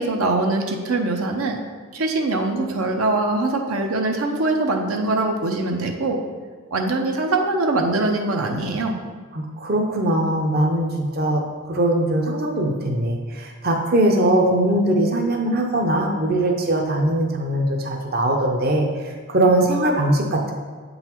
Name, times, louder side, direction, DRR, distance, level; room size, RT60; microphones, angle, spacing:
voice 1, 0.0-1.6 1.9-6.2 6.7-9.0, right 2 dB, 80° right, 3 dB, 0.7 m, -22 dB
voice 2, 9.3-20.5, right 1 dB, 45° right, 2 dB, 0.6 m, -21 dB
7.9 x 3.9 x 4.4 m, 1.5 s
head